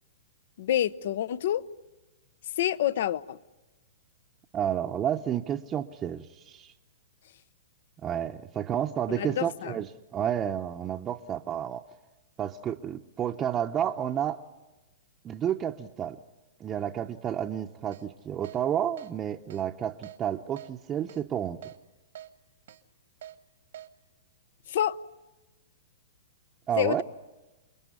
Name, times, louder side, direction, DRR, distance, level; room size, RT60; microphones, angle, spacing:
voice 1, 0.6-1.6 2.6-3.4 9.1-9.7 24.7-25.0 26.8-27.0, left 11 dB, 60° left, 0.9 m, -27 dB
voice 2, 4.5-6.7 8.0-11.8 12.4-14.4 15.2-16.2 16.6-21.6 26.7-27.0, right 9 dB, 20° right, 0.8 m, -31 dB
Keyboard (musical), 17.9-18.0 18.4-18.6 19.0-19.1 19.5-19.6 20.0-20.2 20.6-20.7 21.1-21.2 21.6-21.8 22.2-22.3 22.7-22.8 23.2-23.4 23.7-23.9, right 11 dB, 70° right, 1.5 m, -44 dB
28.5 x 21.5 x 9.6 m
hypercardioid pair, 140°, 0 cm